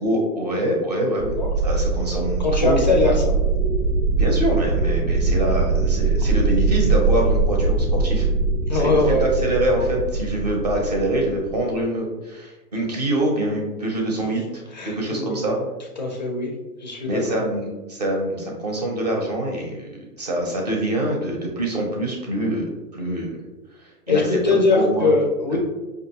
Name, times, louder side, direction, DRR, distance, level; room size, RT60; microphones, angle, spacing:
voice 1, 0.0-1.4 1.6-3.2 4.1-8.3 8.7-15.6 17.1-23.4 23.8-25.1 25.5-25.6, right 1 dB, 25° right, 0 dB, 0.5 m, -25 dB
sound 1, 1.2-11.8, right 3 dB, 85° right, 0.7 m, -22 dB
voice 2, 2.4-3.3 8.7-9.3 14.7-15.4 16.0-16.5 16.8-17.5 24.1-25.6, left 3 dB, 30° left, 0 dB, 0.4 m, -21 dB
5.2 x 2.5 x 2.7 m, 1.1 s
hypercardioid pair, 165°, 48 cm